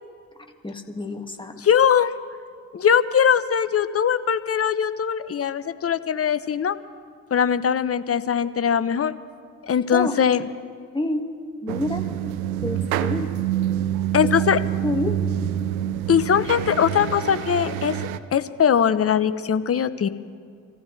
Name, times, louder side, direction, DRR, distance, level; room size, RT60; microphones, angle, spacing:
voice 1, 0.6-1.6 9.9-10.2 10.9-11.3 11.6-12.0 12.6-13.3 14.2-14.3 14.8-15.1, left 2 dB, 10° left, 4 dB, 1.9 m, -28 dB
voice 2, 1.6-2.1 2.7-6.8 7.3-9.1 9.6-10.4 14.1-14.6 16.1-18.0 18.3-20.1, left 8 dB, 35° left, 13 dB, 0.8 m, -21 dB
sound 1, 11.7-18.2, right 11 dB, 85° right, 0.6 m, -26 dB
25.0 x 14.5 x 3.3 m, 2.2 s
hypercardioid pair, 45°, 42 cm